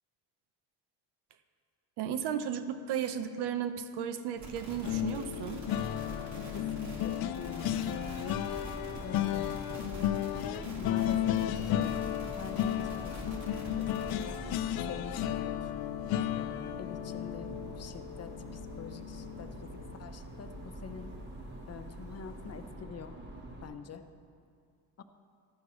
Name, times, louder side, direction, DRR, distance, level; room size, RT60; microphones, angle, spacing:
voice 1, 2.0-5.7, right 8 dB, 80° right, 10 dB, 0.8 m, -34 dB
sound 1, 4.4-14.4, right 1 dB, 45° right, 2.4 m, -45 dB
sound 2, 4.8-20.0 20.4-20.6 20.9-21.1, left 12 dB, 60° left, 0.6 m, -34 dB
voice 2, 6.5-8.1 9.0-9.5 10.8-13.5 13.8-14.4 14.8-15.7 16.3-21.1 21.7-23.2 23.6-24.1 25.0-25.1, left 6 dB, 40° left, 8 dB, 0.8 m, -46 dB
sound 3, 7.9-23.7, right 1 dB, 25° right, 1.5 m, -46 dB
14.5 x 11.5 x 3.1 m, 2.2 s
supercardioid pair, 80°, 40 cm